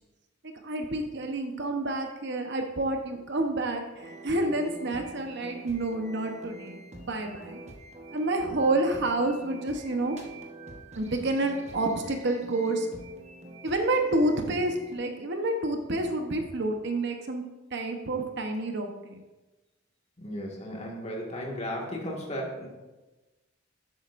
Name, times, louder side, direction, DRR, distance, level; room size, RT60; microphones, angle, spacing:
voice 1, 0.6-7.6 8.1-10.2 10.9-12.9 13.6-17.4 17.7-19.2, right 2 dB, 60° right, 4 dB, 1.0 m, -29 dB
sound 1, 4.0-14.9, right 2 dB, 35° right, 1.2 m, -46 dB
voice 2, 20.2-22.7, equal, 35° left, -1 dB, 1.9 m, -35 dB
11.0 x 7.9 x 2.6 m, 1.1 s
head